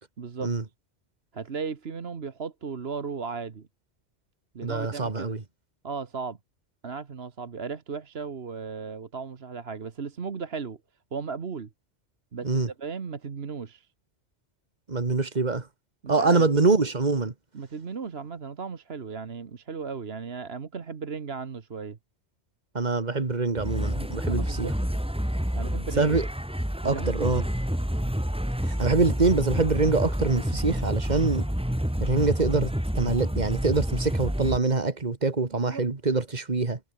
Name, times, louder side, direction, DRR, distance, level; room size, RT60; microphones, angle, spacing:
voice 1, 0.2-0.5 1.3-3.7 4.5-5.4 5.8-6.4 6.8-10.8 11.1-11.7 12.3-13.9 16.0-16.5 17.5-22.0 24.3-24.7 25.5-26.2 26.8-27.5 35.5-35.8, right 5 dB, 60° right, 1.6 m, -36 dB
voice 2, 4.6-5.4 12.4-12.7 14.9-15.7 16.1-17.3 22.7-24.7 26.0-26.3 26.8-27.4 28.6-31.5 32.0-36.8, right 3 dB, 40° right, 1.9 m, -25 dB
sound 1, 23.6-34.6, equal, 5° right, 2.0 m, -28 dB
omnidirectional pair, 1.2 m